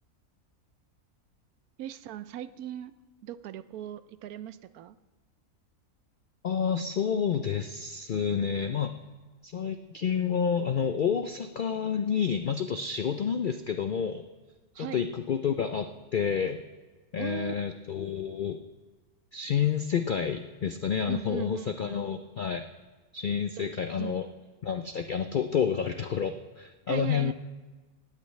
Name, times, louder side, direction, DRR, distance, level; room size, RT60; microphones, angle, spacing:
voice 1, 1.8-2.9 3.2-5.0 14.7-15.0 17.2-17.5 21.1-22.1 23.6-24.1 26.9-27.3, right 11 dB, 80° right, 14 dB, 1.1 m, -39 dB
voice 2, 6.4-8.9 9.4-14.2 14.8-16.6 17.1-18.6 19.3-22.6 23.1-24.3 24.6-27.3, left 7 dB, 85° left, 8 dB, 0.4 m, -29 dB
18.0 x 15.0 x 3.2 m, 1.3 s
omnidirectional pair, 1.6 m